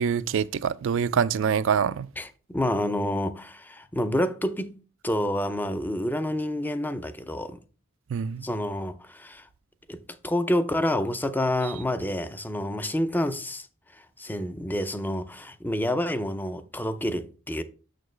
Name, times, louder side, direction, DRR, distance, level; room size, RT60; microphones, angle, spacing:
voice 1, 0.0-2.1 8.1-8.4, right 7 dB, 70° right, 0.4 m, -25 dB
voice 2, 2.2-4.8 5.0-7.6 8.4-9.5 9.9-13.7 14.2-17.6, left 1 dB, 10° left, 0.5 m, -28 dB
6.6 x 6.5 x 3.2 m
head